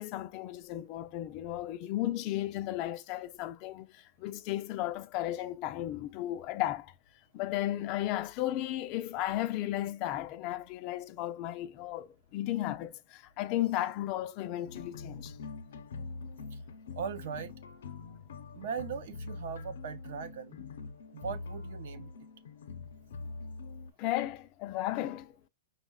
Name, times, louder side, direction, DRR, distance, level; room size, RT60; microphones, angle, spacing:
voice 1, 0.0-6.9 7.3-15.4 24.0-25.4, left 14 dB, 35° left, 0.3 m, -34 dB
sound 1, 14.7-23.9, left 4 dB, 80° left, 0.6 m, -44 dB
voice 2, 17.0-17.5 18.5-20.6 21.1-22.1, right 7 dB, 60° right, 0.6 m, -39 dB
5.2 x 2.1 x 2.2 m
supercardioid pair, 165°, 0 cm